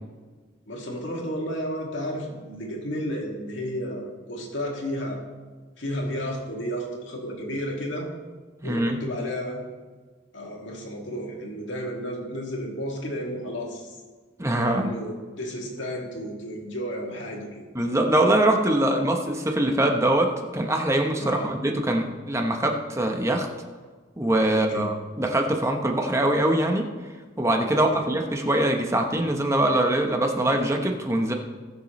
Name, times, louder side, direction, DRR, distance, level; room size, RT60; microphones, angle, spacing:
voice 1, 0.7-5.2 5.8-8.1 8.6-9.6 10.3-14.0 14.8-17.6 21.2-21.5 24.5-24.9 27.7-28.0, equal, 70° left, -1 dB, 2.3 m, -32 dB
voice 2, 8.6-9.0 14.4-14.9 17.7-23.5 24.2-26.9 27.4-31.3, right 1 dB, 15° right, 3 dB, 1.0 m, -23 dB
19.5 x 7.0 x 3.2 m, 1.4 s
head